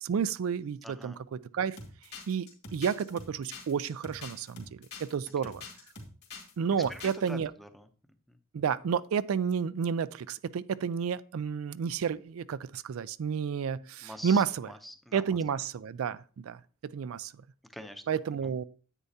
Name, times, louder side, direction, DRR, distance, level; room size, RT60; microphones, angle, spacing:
voice 1, 0.0-1.8 2.3-5.6 6.6-7.5 8.5-14.7 15.1-16.6 16.8-17.3 18.1-18.6, right 7 dB, 90° right, 0.4 m, -31 dB
voice 2, 0.8-1.2 5.4-5.5 6.9-7.9 8.3-8.4 14.0-15.2 17.7-18.0, equal, ahead, 0.6 m, -45 dB
sound 1, 1.8-6.5 6.8-7.3, left 3 dB, 55° left, 2.2 m, -45 dB
9.8 x 8.2 x 2.8 m
head